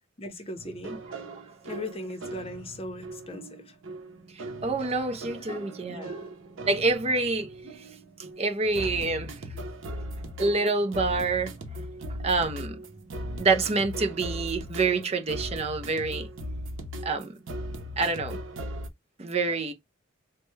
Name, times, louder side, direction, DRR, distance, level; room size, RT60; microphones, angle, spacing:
voice 1, 0.2-1.0 1.6-3.8 5.3-6.3 7.6-7.7, left 2 dB, 30° left, 0.7 m, -39 dB
sound 1, 0.6-18.9, right 1 dB, 80° right, 0.7 m, -39 dB
voice 2, 4.6-6.1 6.7-7.5 8.4-9.3 10.4-11.5 12.2-12.8 13.4-16.3 17.0-17.4 18.0-18.4 19.2-19.7, right 3 dB, 30° right, 0.5 m, -27 dB
3.2 x 2.1 x 3.1 m
head